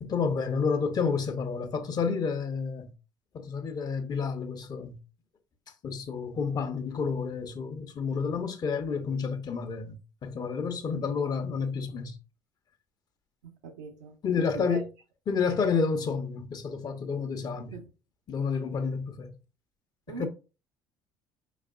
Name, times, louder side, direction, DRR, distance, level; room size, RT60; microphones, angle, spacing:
voice 1, 0.0-2.9 3.3-5.0 5.8-10.0 10.2-12.2 14.2-14.9 15.3-17.7 18.3-19.4 20.2-20.3, left 5 dB, 45° left, 1.0 m, -30 dB
voice 2, 13.4-14.8 17.7-17.9 20.1-20.3, right 6 dB, 85° right, 1.0 m, -41 dB
5.2 x 4.1 x 2.5 m
hypercardioid pair, 65°, 10 cm